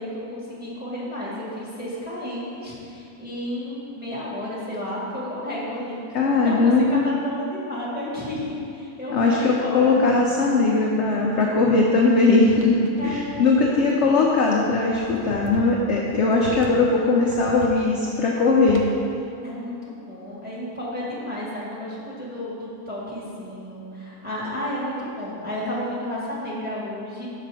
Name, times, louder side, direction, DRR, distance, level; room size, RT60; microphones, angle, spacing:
voice 1, 0.0-6.0 6.3-10.0 11.1-11.4 13.0-13.9 19.4-27.3, left 1 dB, 5° right, -7 dB, 1.6 m, -32 dB
voice 2, 6.1-7.1 9.1-18.8, left 3 dB, 60° left, -2 dB, 0.8 m, -19 dB
sound 1, 12.4-19.2, right 3 dB, 80° right, 1.2 m, -39 dB
5.9 x 5.5 x 4.8 m, 2.6 s
omnidirectional pair, 1.7 m